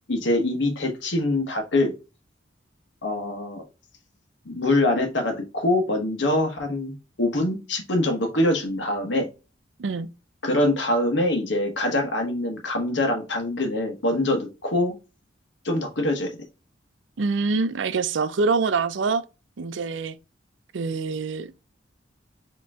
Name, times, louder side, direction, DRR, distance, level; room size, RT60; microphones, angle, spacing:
voice 1, 0.1-1.9 3.0-3.6 4.4-9.3 10.4-14.9 15.6-16.4, left 1 dB, 75° left, 1.2 m, -24 dB
voice 2, 17.2-19.2 19.6-20.2 20.7-21.6, right 4 dB, 80° right, 0.5 m, -25 dB
5.0 x 3.0 x 3.5 m
head